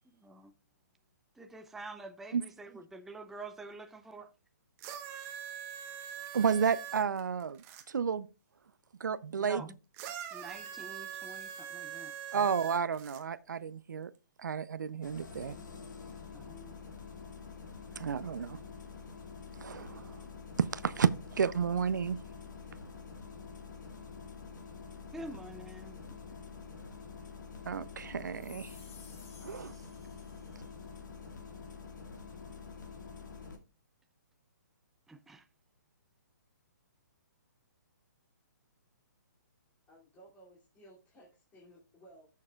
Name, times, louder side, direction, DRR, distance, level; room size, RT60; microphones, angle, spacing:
voice 1, 0.2-0.5 1.4-4.3 9.5-9.7 10.3-12.1 16.3-16.8 25.1-26.0 35.1-35.4, right 2 dB, 5° right, 0.4 m, -47 dB
sound 1, 4.8-7.8 9.9-13.2 14.1-14.2, right 9 dB, 25° right, 1.0 m, -43 dB
voice 2, 6.3-8.3 9.0-9.6 12.3-14.1 14.4-15.6 18.0-18.6 19.6-20.3 20.6-22.2 27.7-28.8 29.4-29.7, right 6 dB, 80° right, 0.6 m, -31 dB
Engine starting, 15.0-33.6, left 5 dB, 85° left, 2.3 m, -47 dB
sound 2, 28.3-30.8, left 7 dB, 50° left, 2.7 m, -57 dB
voice 3, 39.9-42.3, right 1 dB, 15° left, 2.7 m, -58 dB
14.5 x 6.6 x 2.3 m
hypercardioid pair, 150°, 10 cm